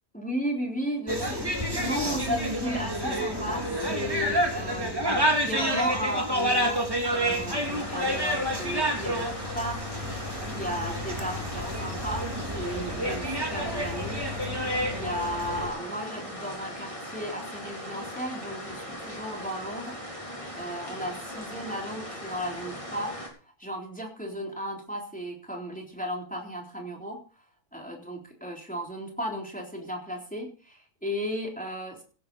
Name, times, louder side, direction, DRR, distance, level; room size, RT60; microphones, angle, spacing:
voice 1, 0.1-20.0 20.6-23.1 23.6-27.2 27.7-32.0, equal, 5° left, 0 dB, 3.7 m, -35 dB
sound 1, 1.1-15.7, equal, 15° right, 3.3 m, -29 dB
sound 2, 7.6-23.3, equal, 20° left, 4.1 m, -39 dB
17.0 x 8.6 x 5.5 m, 0.41 s
omnidirectional pair, 1.5 m